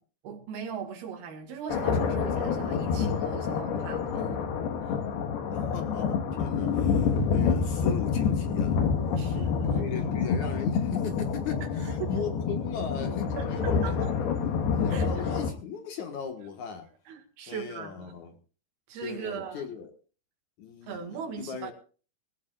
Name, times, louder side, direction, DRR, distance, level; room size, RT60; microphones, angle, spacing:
voice 1, 0.2-4.4 4.8-5.0 9.2-9.8 11.8-12.3 13.4-14.1 14.9-15.4 17.1-18.2 18.9-19.7 20.9-21.7, right 7 dB, 75° right, 3.8 m, -39 dB
sound 1, 1.7-15.5, left 6 dB, 80° left, 3.6 m, -28 dB
voice 2, 5.5-8.8 9.1-14.1 14.8-16.9 17.5-18.3 19.0-19.9 20.6-21.7, left 6 dB, 60° left, 2.6 m, -38 dB
19.5 x 17.0 x 2.5 m
omnidirectional pair, 4.5 m